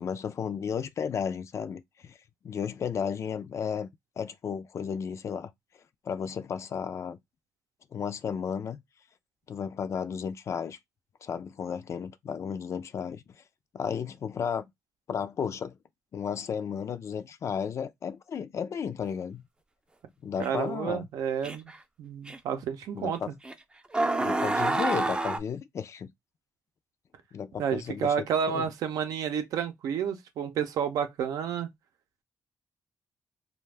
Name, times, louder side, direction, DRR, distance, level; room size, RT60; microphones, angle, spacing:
voice 1, 0.0-2.2 2.4-3.9 4.2-5.5 6.0-7.2 7.9-8.8 9.5-10.8 11.2-13.2 13.7-14.7 15.1-15.8 16.1-19.5 20.2-21.1 22.9-23.3 24.2-26.1 27.3-28.1 28.5-28.7, left 7 dB, 55° left, 0.4 m, -33 dB
sound 1, 20.4-20.5 21.4-21.8 22.3-22.4 23.4-23.5 23.9-25.4, right 2 dB, 15° right, 0.4 m, -27 dB
voice 2, 20.4-21.7 22.0-23.2 27.6-31.7, right 8 dB, 90° right, 0.5 m, -30 dB
2.4 x 2.3 x 3.3 m
cardioid pair, 95°, 6 cm